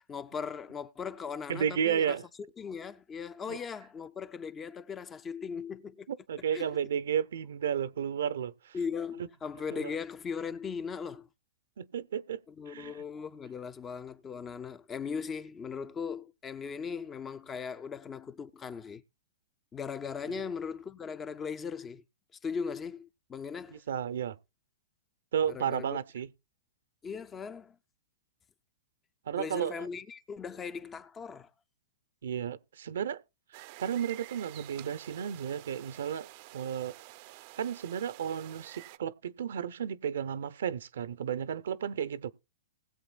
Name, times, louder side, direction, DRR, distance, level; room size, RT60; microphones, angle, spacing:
voice 1, 0.1-2.2 2.6-6.1 6.5-6.7 8.7-11.3 12.5-19.0 19.7-22.0 22.4-23.8 25.4-26.0 27.0-27.8 29.3-31.5, left 6 dB, 15° left, 0.5 m, -38 dB
voice 2, 1.5-2.2 3.5-3.6 6.1-8.8 9.7-10.0 11.8-12.4 12.7-12.9 20.3-20.4 23.7-24.4 25.3-26.3 29.3-29.9 32.2-33.2 33.8-36.3 36.5-36.9 37.6-42.3, right 8 dB, 80° right, 0.7 m, -33 dB
sound 1, 33.5-39.0, right 19 dB, 45° right, 0.5 m, -49 dB
19.5 x 8.0 x 2.3 m
hypercardioid pair, 145°, 0 cm